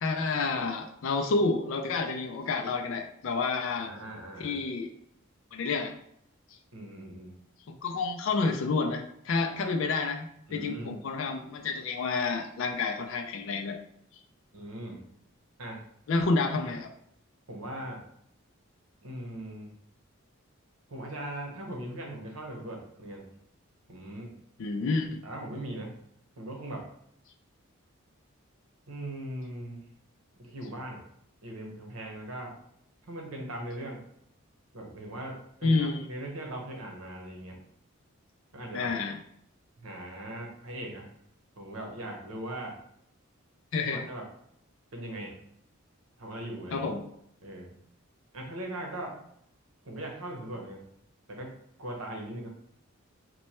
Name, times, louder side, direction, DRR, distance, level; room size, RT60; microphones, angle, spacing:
voice 1, 0.0-3.9 4.4-4.9 5.5-6.0 7.7-13.8 14.1-14.2 16.1-16.9 24.6-25.2 35.6-36.1 38.7-39.2 43.7-44.1 46.7-47.0, left 3 dB, 65° left, 3 dB, 0.4 m, -29 dB
voice 2, 3.8-4.6 6.7-7.4 10.5-10.9 14.5-15.1 15.6-15.8 17.5-18.0 19.0-19.7 20.9-23.2 23.9-24.3 25.2-25.9 26.4-26.9 28.9-29.8 30.4-31.0 31.4-32.5 33.1-34.0 34.7-37.6 38.5-38.9 39.8-41.1 41.6-42.8 43.9-44.3 44.9-45.4 46.2-46.9 47.4-47.7 48.3-49.2 49.8-50.8 51.3-51.5 51.8-52.5, right 1 dB, 85° right, 1 dB, 0.9 m, -39 dB
3.0 x 2.2 x 4.2 m, 0.71 s
head